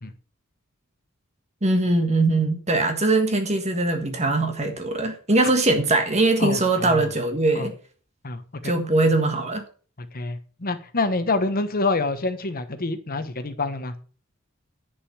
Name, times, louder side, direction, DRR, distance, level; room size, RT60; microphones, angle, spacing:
voice 1, 1.6-7.7 8.6-9.6, right 2 dB, 30° right, 5 dB, 1.6 m, -21 dB
voice 2, 6.4-7.1 7.5-7.7 8.2-8.7 10.1-13.9, left 3 dB, 45° left, 10 dB, 1.2 m, -27 dB
10.5 x 5.5 x 6.7 m, 0.40 s
head